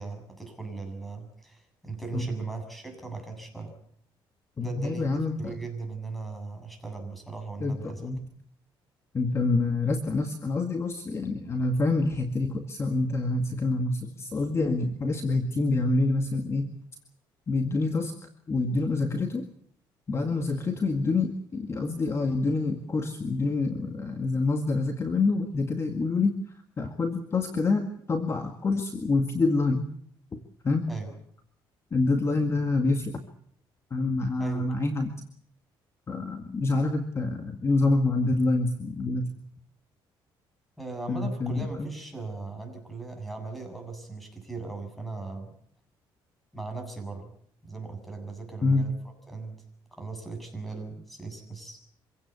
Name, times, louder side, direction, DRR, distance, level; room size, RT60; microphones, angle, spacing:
voice 1, 0.0-3.7 4.6-8.1 30.9-31.2 34.4-34.6 40.8-45.5 46.5-47.3 47.6-48.9 49.3-49.6 49.9-51.8, right 3 dB, ahead, 5 dB, 7.5 m, -38 dB
voice 2, 4.6-5.5 7.6-8.2 9.1-16.7 17.5-18.1 18.5-19.5 20.1-26.3 26.8-29.9 30.6-30.9 31.9-33.2 33.9-35.2 36.1-39.3 41.1-41.9 48.6-48.9, left 3 dB, 30° left, 6 dB, 2.0 m, -27 dB
26.0 x 16.5 x 8.3 m, 0.65 s
cardioid pair, 120°, 9 cm